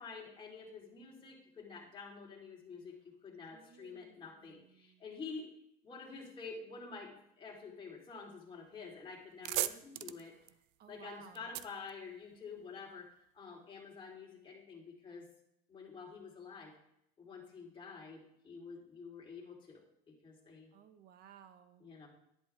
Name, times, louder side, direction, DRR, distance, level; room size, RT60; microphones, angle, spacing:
voice 1, 0.0-5.5 5.8-10.3 10.9-13.1 13.3-15.3 15.7-16.7 17.2-19.8 20.1-20.7 21.8-22.1, left 5 dB, 25° left, -2 dB, 3.9 m, -49 dB
voice 2, 3.5-5.0 10.8-11.5 20.7-21.9, right 8 dB, 50° right, 9 dB, 1.3 m, -58 dB
sound 1, 8.7-8.9 9.2-12.8, right 16 dB, 75° right, 0.6 m, -40 dB
11.0 x 10.5 x 3.6 m, 0.73 s
supercardioid pair, 105°, 21 cm